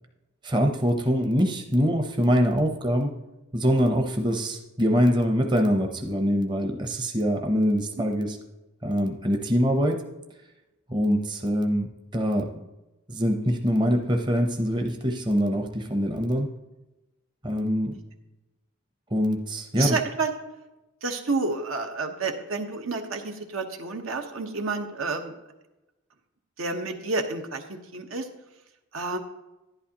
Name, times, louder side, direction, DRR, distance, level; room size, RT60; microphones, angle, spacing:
voice 1, 0.4-3.1 3.5-8.4 8.8-10.1 10.9-12.6 13.1-16.5 17.4-18.0 19.1-20.0, equal, 20° right, 4 dB, 0.7 m, -24 dB
voice 2, 19.8-20.3 21.0-25.3 26.6-27.6 27.9-28.2 28.9-29.2, right 3 dB, 80° right, 4 dB, 1.0 m, -29 dB
11.0 x 11.0 x 2.9 m, 1.0 s
head